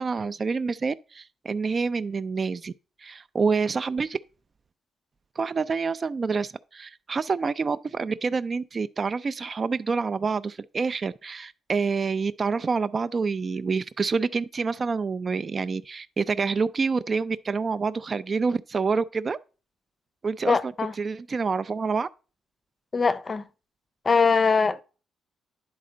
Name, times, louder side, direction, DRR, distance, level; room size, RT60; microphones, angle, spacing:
voice 1, 0.0-2.7 3.0-4.2 5.4-19.4 20.2-20.7 21.0-22.1, right 4 dB, 35° right, 0.3 m, -27 dB
voice 2, 20.5-20.9 22.9-23.5 24.0-24.8, left 5 dB, 30° left, 0.6 m, -22 dB
10.5 x 4.2 x 3.8 m
cardioid pair, 90°, 0 cm